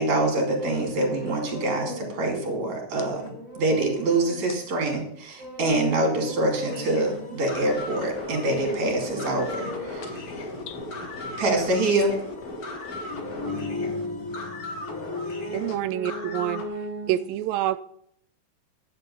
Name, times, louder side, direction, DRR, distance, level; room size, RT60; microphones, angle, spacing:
voice 1, 0.0-3.2 3.6-10.1 11.4-12.2, right 2 dB, 55° right, 3.7 m, -25 dB
sound 1, 0.6-5.0 5.4-11.9 12.8-17.3, left 2 dB, 5° left, 2.7 m, -37 dB
sound 2, 6.7-16.6, left 2 dB, 45° left, 1.2 m, -37 dB
voice 2, 10.0-11.0 11.3-11.4 13.1-13.3 13.9-15.8, left 9 dB, 75° left, 2.5 m, -48 dB
voice 3, 15.5-16.6 17.1-17.8, right 14 dB, 85° right, 2.2 m, -27 dB
11.0 x 8.3 x 5.4 m
omnidirectional pair, 4.1 m